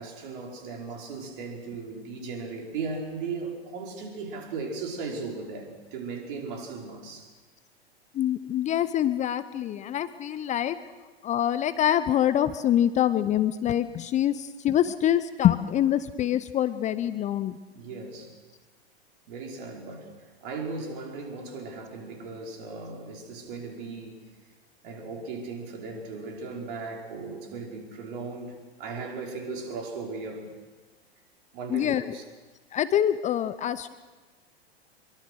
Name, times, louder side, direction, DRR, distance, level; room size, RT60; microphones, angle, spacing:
voice 1, 0.0-7.3 17.7-18.3 19.3-24.2 24.8-30.5 31.5-32.2, right 4 dB, 55° right, 5.1 m, -37 dB
voice 2, 8.1-10.8 11.2-17.6 31.7-32.1 32.7-33.9, left 11 dB, 20° left, 0.7 m, -25 dB
24.5 x 23.0 x 6.4 m
figure-of-eight pair, 100°, 32 cm